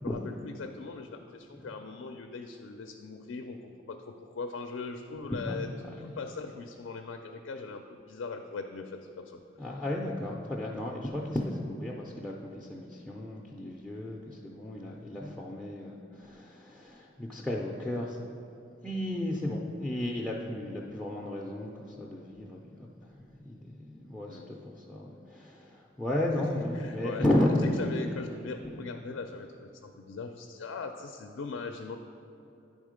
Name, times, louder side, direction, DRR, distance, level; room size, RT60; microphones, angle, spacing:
voice 1, 0.0-5.7 6.0-9.4 24.3-24.5 26.3-27.2 27.6-32.0, left 4 dB, 75° left, 5 dB, 0.4 m, -40 dB
voice 2, 5.3-5.7 9.6-18.2 18.8-22.9 23.1-27.7, left 1 dB, 5° left, -4 dB, 0.4 m, -33 dB
9.6 x 3.7 x 5.0 m, 2.9 s
head